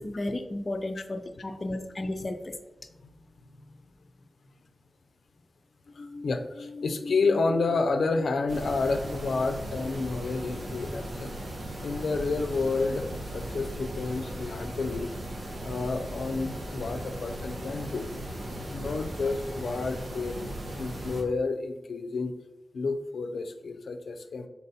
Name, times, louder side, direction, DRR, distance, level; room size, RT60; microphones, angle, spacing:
voice 1, 0.0-2.6, left 1 dB, 30° left, 6 dB, 0.5 m, -33 dB
voice 2, 5.9-11.3 11.8-15.1 15.6-18.1 18.5-22.3 22.7-24.5, left 3 dB, 85° left, 6 dB, 0.5 m, -30 dB
sound 1, 8.5-21.2, right 1 dB, 80° right, 1.4 m, -37 dB
5.3 x 4.3 x 4.2 m, 1.0 s
wide cardioid pair, 90°, 0 cm